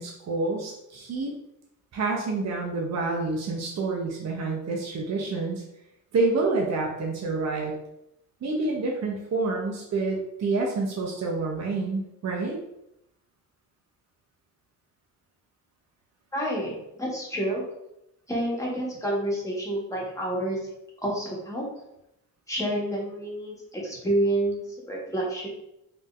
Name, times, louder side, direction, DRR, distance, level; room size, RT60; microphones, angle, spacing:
voice 1, 0.0-1.3 1.9-5.6 6.1-7.7 8.4-12.6, right 3 dB, 45° right, -1 dB, 0.7 m, -28 dB
voice 2, 16.3-17.6 18.3-20.6 21.0-21.6 22.5-25.5, right 1 dB, 10° left, -4 dB, 1.4 m, -29 dB
3.5 x 2.8 x 2.5 m, 0.83 s
cardioid pair, 75°, 37 cm